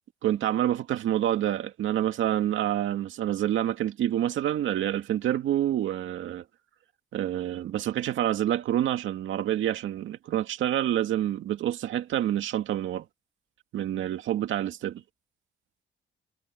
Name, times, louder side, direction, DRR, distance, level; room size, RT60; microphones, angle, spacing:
voice 1, 0.2-6.4 7.1-13.0 13.7-15.0, right 12 dB, 75° right, 2.2 m, -27 dB
cardioid pair, 90°, 20 cm